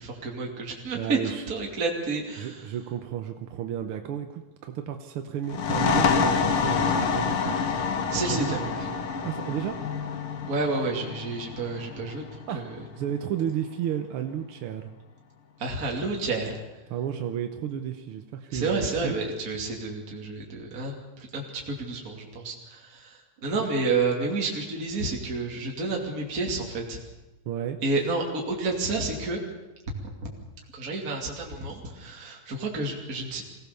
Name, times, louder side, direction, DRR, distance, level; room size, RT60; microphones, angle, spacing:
voice 1, 0.0-2.6 8.1-8.9 10.5-12.2 12.5-12.7 15.6-16.6 18.5-27.0 27.8-29.4 30.2-30.3 30.7-33.4, right 3 dB, 30° right, -1 dB, 3.0 m, -30 dB
voice 2, 0.9-1.5 2.4-7.9 8.1-8.8 9.2-9.8 12.5-12.6 12.9-14.9 16.9-19.2 23.4-23.5 27.5-27.8, right 9 dB, 65° right, 6 dB, 1.5 m, -32 dB
sound 1, 5.5-12.9, left 5 dB, 55° left, 2.0 m, -27 dB
sound 2, 9.8-14.1 14.6-14.8 15.6-16.1, left 9 dB, 75° left, 2.7 m, -42 dB
24.0 x 16.5 x 6.9 m, 1.1 s
omnidirectional pair, 3.3 m